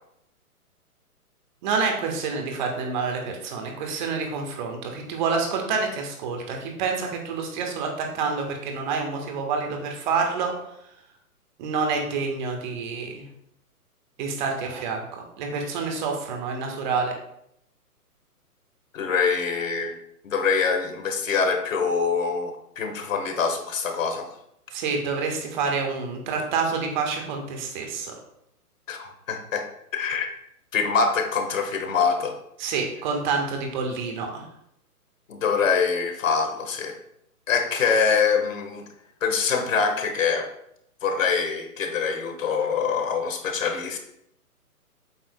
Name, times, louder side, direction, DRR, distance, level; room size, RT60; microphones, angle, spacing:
voice 1, 1.6-10.5 11.6-13.3 14.2-17.1 24.7-28.1 32.6-34.4, right 5 dB, 30° right, 2 dB, 1.5 m, -28 dB
voice 2, 18.9-19.9 20.2-24.3 28.9-29.7 29.9-30.3 30.7-32.3 35.3-36.9 37.5-38.8 39.2-40.5 41.0-44.0, left 5 dB, 55° left, 5 dB, 1.5 m, -24 dB
8.1 x 7.7 x 2.3 m, 0.76 s
figure-of-eight pair, 135°, 46 cm